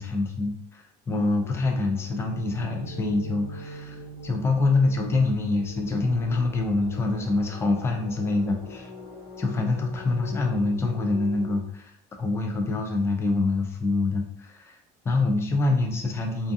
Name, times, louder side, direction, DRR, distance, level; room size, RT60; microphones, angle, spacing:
voice 1, 0.0-8.9 9.4-11.9 12.2-14.8 15.0-16.5, left 3 dB, 15° left, 3 dB, 0.3 m, -25 dB
sound 1, 1.4-11.6, left 1 dB, 90° left, 0.9 m, -42 dB
2.4 x 2.3 x 2.6 m, 0.65 s
cardioid pair, 150°, 17 cm